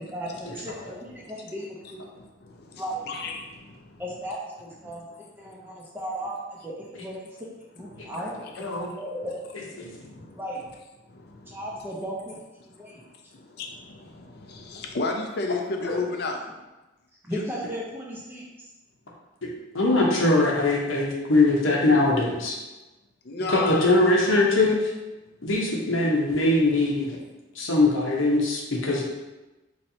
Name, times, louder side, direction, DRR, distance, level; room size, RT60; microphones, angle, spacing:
voice 1, 0.0-2.0 2.8-3.1 4.0-7.5 7.8-10.6 11.5-12.3 12.8-13.1 17.3-18.4, equal, 10° right, -4 dB, 0.6 m, -36 dB
voice 2, 1.8-4.0 4.8-5.0 5.4-5.8 7.9-8.3 8.5-8.9 9.9-10.4 11.1-11.9 12.7-16.5 17.3-17.4 23.2-24.2, left 3 dB, 55° left, 2 dB, 0.5 m, -35 dB
voice 3, 8.6-8.9 9.8-9.9 15.8-16.0 19.7-22.6 23.5-24.9 25.4-27.2 27.5-29.0, left 2 dB, 85° left, -2 dB, 0.9 m, -21 dB
4.1 x 3.1 x 2.7 m, 1.1 s
head